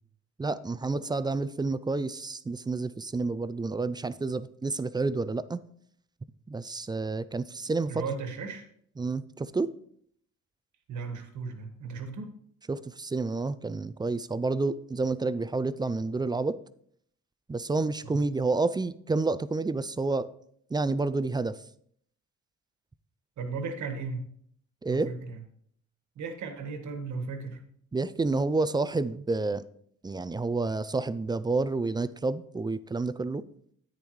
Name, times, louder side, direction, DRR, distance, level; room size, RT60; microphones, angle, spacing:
voice 1, 0.4-5.6 6.5-8.0 9.0-9.7 12.7-16.6 17.5-20.3 20.7-21.6 24.8-25.1 27.9-29.6 30.0-33.4, right 3 dB, 15° right, 0.3 m, -29 dB
voice 2, 7.9-8.7 10.9-12.3 18.0-18.2 23.4-24.3 24.9-25.4 26.2-27.6, right 4 dB, 70° right, 1.7 m, -36 dB
10.5 x 8.8 x 3.2 m
cardioid pair, 90°, 30 cm